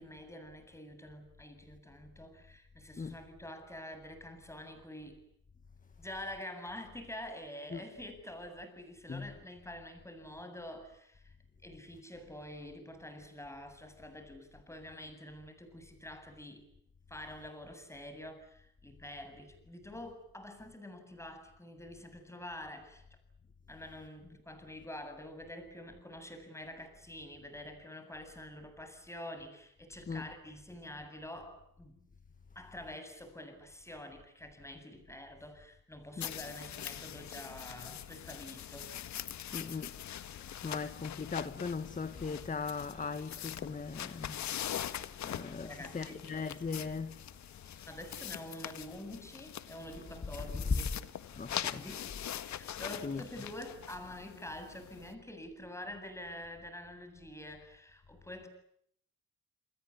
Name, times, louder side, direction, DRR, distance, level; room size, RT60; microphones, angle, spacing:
voice 1, 0.0-5.2 6.0-11.3 11.6-16.7 17.1-23.0 23.7-32.0 32.5-38.9 45.6-46.2 47.9-50.9 51.7-52.2 52.4-58.5, left 1 dB, 10° left, 7.9 m, -47 dB
sound 1, 36.2-55.1, left 11 dB, 70° left, 1.7 m, -43 dB
voice 2, 39.5-39.9 40.6-44.4 45.2-45.7 45.9-47.2 47.7-47.9 51.3-51.8 53.0-53.2, left 4 dB, 25° left, 1.9 m, -39 dB
29.0 x 21.0 x 9.7 m
cardioid pair, 90°, 30 cm